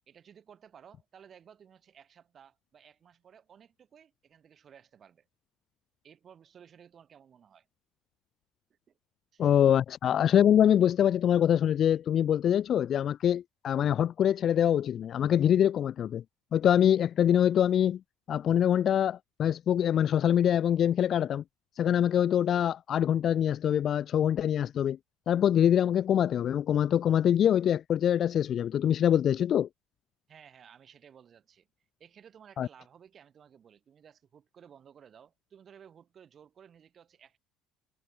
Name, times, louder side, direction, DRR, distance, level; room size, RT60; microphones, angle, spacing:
voice 1, 0.1-5.3 6.0-7.7 8.7-9.0 9.3-9.5 30.3-31.7 32.0-37.4, right 8 dB, 35° right, 3.8 m, -56 dB
voice 2, 9.4-16.2 16.5-18.0 18.3-21.4 21.8-25.0 25.3-29.7 32.6-32.7, left 9 dB, 40° left, 0.4 m, -24 dB
cardioid pair, 140°, 0 cm